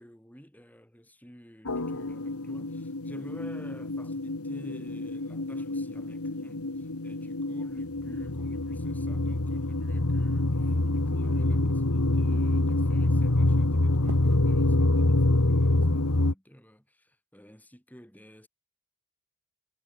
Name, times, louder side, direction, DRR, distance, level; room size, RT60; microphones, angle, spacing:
voice 1, 0.0-18.5, equal, 5° left, 7.9 m, -51 dB
sound 1, 1.7-16.3, left 2 dB, 85° left, 1.7 m, -26 dB
sound 2, 10.1-11.0 11.5-11.6 11.9-12.5 14.0-15.3 15.6-16.1, right 2 dB, 90° right, 1.2 m, -42 dB
head